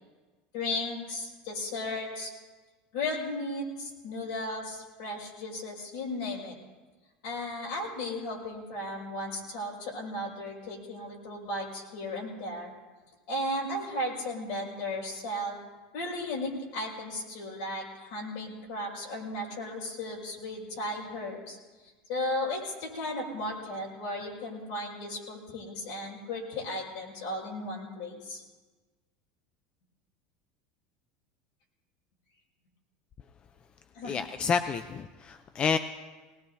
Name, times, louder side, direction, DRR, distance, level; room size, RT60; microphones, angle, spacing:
voice 1, 0.5-2.3 2.9-6.5 7.2-12.7 13.3-15.6 15.9-21.6 22.1-28.4 33.9-34.2, left 1 dB, 75° left, -2 dB, 5.5 m, -35 dB
voice 2, 34.0-35.8, left 6 dB, 25° left, 10 dB, 0.5 m, -29 dB
20.5 x 19.5 x 2.7 m, 1.3 s
supercardioid pair, 135°, 4 cm